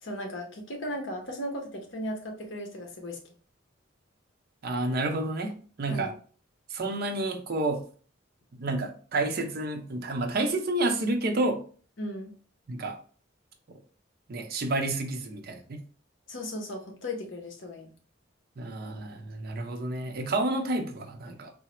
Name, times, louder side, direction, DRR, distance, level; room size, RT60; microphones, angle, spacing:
voice 1, 0.0-3.2 5.9-6.1 12.0-12.3 16.3-17.9, left 1 dB, 65° left, 2 dB, 0.8 m, -36 dB
voice 2, 4.6-6.1 6.7-7.8 8.5-11.6 12.7-13.0 14.3-15.8 18.6-21.5, right 2 dB, 50° right, 4 dB, 0.5 m, -30 dB
3.8 x 2.1 x 2.9 m, 0.42 s
head